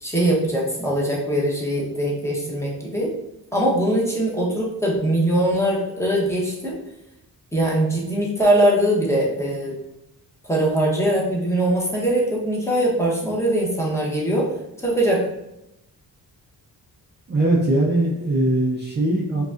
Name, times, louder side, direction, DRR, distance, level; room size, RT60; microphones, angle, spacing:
voice 1, 0.0-3.1 3.5-6.8 7.5-9.8 10.5-14.5 14.8-15.3, right 1 dB, 5° left, -5 dB, 0.9 m, -21 dB
voice 2, 17.3-19.4, right 1 dB, 30° right, -3 dB, 0.5 m, -20 dB
4.9 x 2.4 x 2.4 m, 0.86 s
cardioid pair, 125°, 39 cm